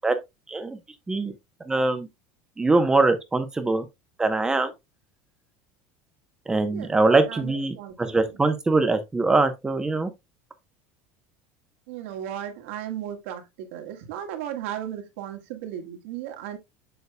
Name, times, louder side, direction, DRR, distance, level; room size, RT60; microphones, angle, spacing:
voice 1, 1.7-2.1 2.6-3.9 4.2-4.7 6.5-10.1, right 3 dB, 10° right, 0.9 m, -22 dB
voice 2, 6.7-8.3 11.9-16.6, right 10 dB, 85° right, 1.7 m, -36 dB
6.8 x 6.5 x 2.3 m
cardioid pair, 160°, 7 cm